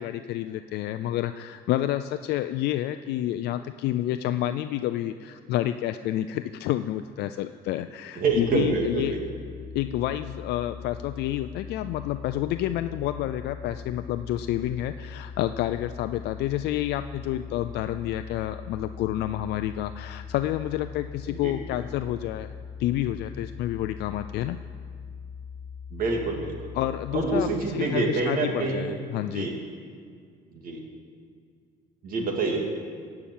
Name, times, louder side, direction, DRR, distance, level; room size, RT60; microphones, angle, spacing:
voice 1, 0.0-9.1 9.7-22.5 22.8-24.6 26.7-27.5 27.7-29.5, left 13 dB, 75° left, 9 dB, 0.4 m, -29 dB
voice 2, 8.1-9.3 21.3-21.6 25.9-26.7 27.1-29.0 29.2-29.6 30.5-30.8 32.0-32.7, right 3 dB, 55° right, 2 dB, 2.3 m, -27 dB
sound 1, 8.3-27.6, left 6 dB, 45° left, 1.6 m, -41 dB
16.5 x 5.9 x 8.7 m, 2.1 s
cardioid pair, 110°, 17 cm